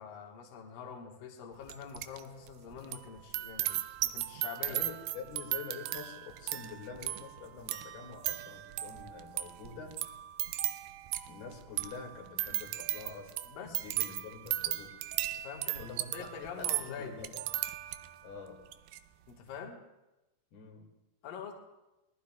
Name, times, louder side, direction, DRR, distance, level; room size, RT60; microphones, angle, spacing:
voice 1, 0.0-4.8 13.5-13.8 15.4-17.2 19.3-19.8 21.2-21.5, left 7 dB, 70° left, 0 dB, 2.9 m, -45 dB
sound 1, 1.7-2.2 2.5-18.2 18.7-19.0, right 14 dB, 90° right, 2.6 m, -37 dB
voice 2, 4.7-10.0 11.3-13.3 13.6-15.0 15.8-17.4 18.2-18.6 20.5-20.9, left 5 dB, 85° left, 0 dB, 4.0 m, -46 dB
23.5 x 19.5 x 2.3 m, 1.0 s
omnidirectional pair, 4.3 m